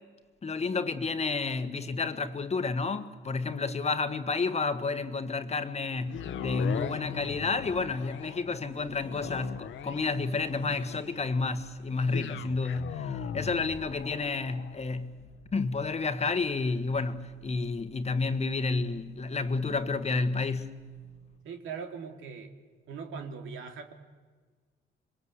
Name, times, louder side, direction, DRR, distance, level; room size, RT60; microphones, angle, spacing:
voice 1, 0.4-15.2 15.5-20.8, left 4 dB, 35° left, 1.5 m, -30 dB
sound 1, 6.1-20.3 20.8-20.9, left 8 dB, 75° left, 1.3 m, -41 dB
voice 2, 21.4-22.5 22.9-23.9, right 5 dB, 80° right, 2.7 m, -40 dB
26.5 x 22.0 x 8.2 m
cardioid pair, 90°, 20 cm